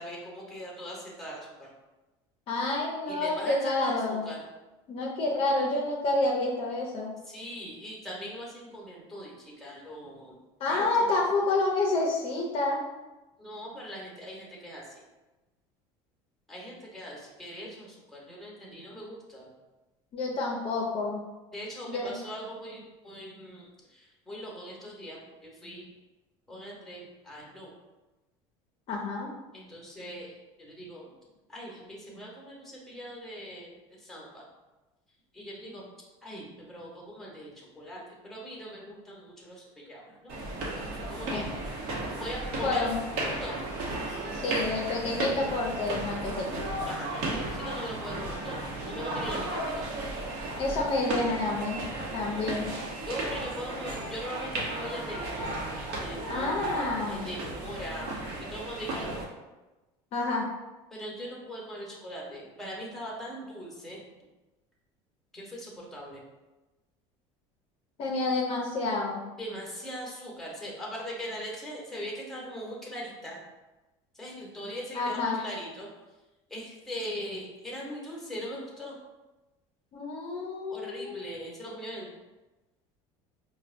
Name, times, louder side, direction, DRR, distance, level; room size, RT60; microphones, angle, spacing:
voice 1, 0.0-1.7 3.1-4.4 7.2-10.4 10.7-11.2 11.5-11.6 13.4-15.0 16.5-19.5 21.5-25.9 26.5-27.7 29.5-31.1 31.5-34.4 35.3-35.9 36.2-40.4 40.7-41.5 42.2-43.7 46.9-49.6 52.4-52.6 53.1-55.5 55.9-56.8 57.1-59.2 60.9-64.3 65.3-66.2 69.4-73.4 74.1-75.9 76.5-79.0 80.7-82.1, equal, 5° left, -3 dB, 0.9 m, -41 dB
voice 2, 2.5-4.2 4.9-7.1 10.6-12.8 20.1-21.2 21.9-22.1 28.9-29.3 41.3-41.4 42.6-43.0 44.3-46.5 50.6-51.8 52.1-52.7 56.3-57.3 60.1-60.5 68.0-69.2 74.9-75.4 79.9-81.3, left 2 dB, 45° left, -1 dB, 0.5 m, -29 dB
sound 1, 40.3-59.2, right 2 dB, 70° right, 0.8 m, -34 dB
4.6 x 2.1 x 2.5 m, 1.1 s
supercardioid pair, 115°, 14 cm